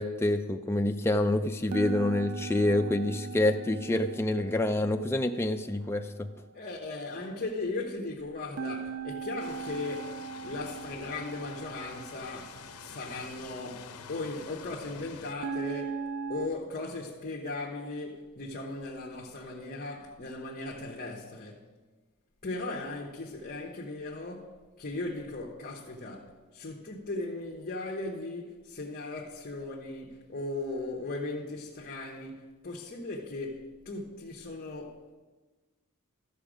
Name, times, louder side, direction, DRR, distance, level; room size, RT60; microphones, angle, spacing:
voice 1, 0.0-6.3, left 1 dB, 10° left, 0.3 m, -27 dB
sound 1, 1.7-5.9 8.6-12.7 15.4-16.5, right 5 dB, 65° right, 0.4 m, -39 dB
voice 2, 6.5-10.2 10.4-16.0 16.3-21.6 22.4-35.0, left 2 dB, 40° left, 1.0 m, -38 dB
sound 2, 9.4-15.3, left 6 dB, 80° left, 0.6 m, -47 dB
13.5 x 6.1 x 5.0 m
head